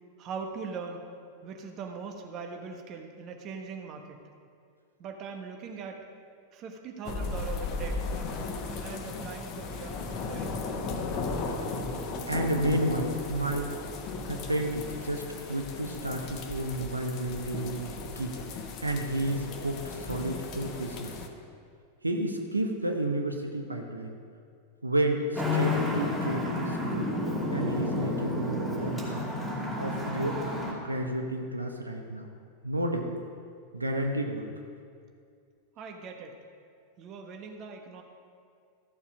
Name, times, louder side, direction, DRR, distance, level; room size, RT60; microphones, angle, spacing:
voice 1, 0.2-1.0 1.4-4.2 5.0-6.0 6.5-8.0 8.8-10.0 10.2-10.8 35.8-36.3 37.0-38.0, right 5 dB, 35° right, 4 dB, 1.2 m, -40 dB
sound 1, 7.0-21.3, left 3 dB, 40° left, 1.1 m, -36 dB
voice 2, 12.3-13.7 14.3-18.4 18.8-21.1 22.0-24.1 24.8-27.1 27.5-29.2 29.8-30.4 30.8-32.3 32.6-33.1 33.7-34.5, right 1 dB, 80° right, 3 dB, 0.9 m, -31 dB
Traffic noise roadway noise, 25.3-30.7, left 2 dB, 5° right, 2.6 m, -30 dB
14.0 x 7.1 x 5.1 m, 2.3 s
figure-of-eight pair, 90°, 0 cm